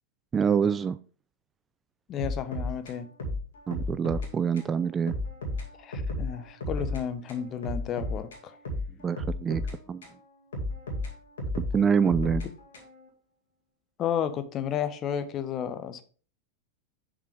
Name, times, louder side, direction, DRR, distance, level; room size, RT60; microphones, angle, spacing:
voice 1, 0.3-1.0 3.7-5.1 9.0-9.6 9.9-10.0 11.7-12.4, right 6 dB, 20° right, 0.3 m, -25 dB
voice 2, 2.1-3.1 5.8-8.6 14.0-16.0, left 9 dB, 30° left, 1.0 m, -32 dB
sound 1, 2.2-4.3 4.6-4.7 5.1-7.0 7.3-10.2 10.5-13.1, left 1 dB, 65° left, 2.3 m, -33 dB
7.3 x 7.0 x 3.5 m
figure-of-eight pair, 90°, 0 cm